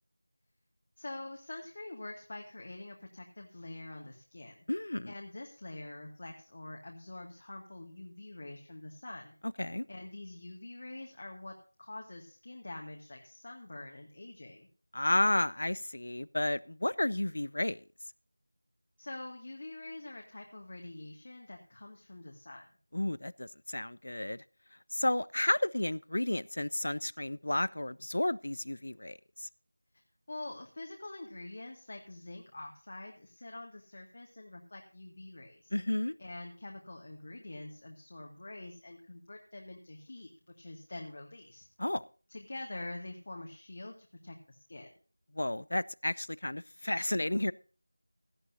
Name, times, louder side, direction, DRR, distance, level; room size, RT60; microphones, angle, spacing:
voice 1, 1.0-4.6 5.1-9.4 9.9-14.7 19.0-22.7 30.3-35.7 36.2-41.7 42.3-44.9, left 2 dB, 40° left, 1 dB, 1.9 m, -46 dB
voice 2, 4.7-5.1 9.6-9.9 14.9-17.8 22.9-24.4 24.9-29.5 35.7-36.1 41.8-42.0 45.3-47.5, left 1 dB, 60° left, 22 dB, 0.5 m, -32 dB
17.0 x 12.5 x 2.7 m, 0.38 s
figure-of-eight pair, 175°, 0 cm